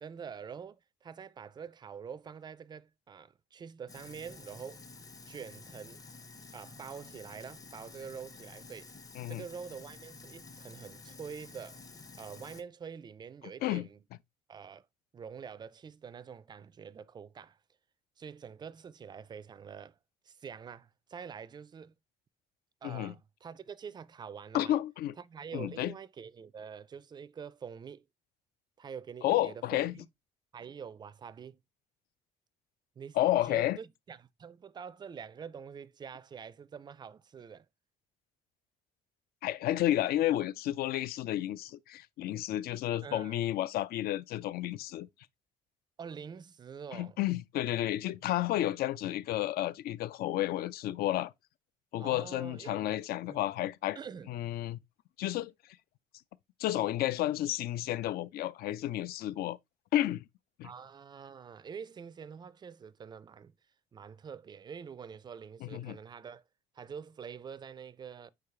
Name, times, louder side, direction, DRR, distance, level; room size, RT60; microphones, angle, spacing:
voice 1, 0.0-4.8 5.3-6.0 6.5-8.9 9.3-11.8 12.2-14.0 14.5-14.9 15.1-17.6 18.2-20.0 20.2-21.9 22.8-24.7 25.2-28.1 28.8-30.1 30.5-31.6 33.0-33.2 33.4-37.7 43.0-43.3 46.0-47.2 52.0-53.0 53.3-53.4 54.0-54.3 60.6-63.5 63.9-66.4 66.7-68.3, right 6 dB, 25° right, 0.3 m, -46 dB
Sink (filling or washing), 3.9-12.6, left 3 dB, 20° left, 0.6 m, -51 dB
voice 2, 22.8-23.1 24.5-25.1 25.5-25.9 29.2-29.9 33.2-33.8 39.4-45.1 46.9-51.3 51.9-54.0 54.3-54.8 55.2-55.5 56.6-59.6 59.9-60.2 60.6-60.7 65.6-66.0, left 14 dB, 65° left, 0.4 m, -31 dB
4.6 x 2.3 x 4.8 m
cardioid pair, 110°, 17 cm